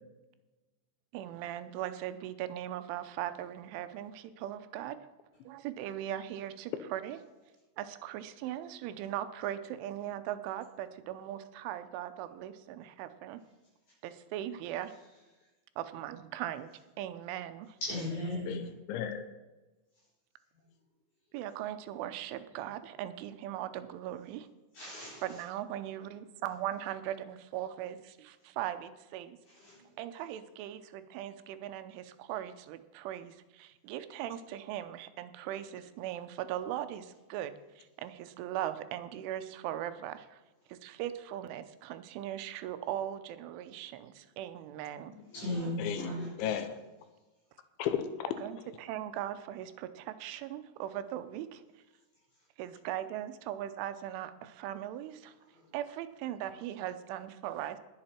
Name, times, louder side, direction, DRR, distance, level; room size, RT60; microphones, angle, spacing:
voice 1, 1.1-5.1 5.5-7.2 7.8-13.4 14.0-14.9 15.8-16.7 17.0-17.8 21.3-24.5 25.2-29.4 30.0-40.4 40.7-45.1 48.4-51.6 52.6-55.4 55.7-57.8, right 12 dB, 85° right, 3.2 m, -39 dB
voice 2, 17.8-18.6 24.8-25.2 29.6-29.8 45.3-46.3, left 1 dB, 55° left, 7.0 m, -36 dB
voice 3, 18.5-19.3 45.1-45.2 45.8-46.8 47.8-48.3, left 9 dB, 80° left, 3.1 m, -35 dB
20.0 x 7.9 x 4.4 m
omnidirectional pair, 5.5 m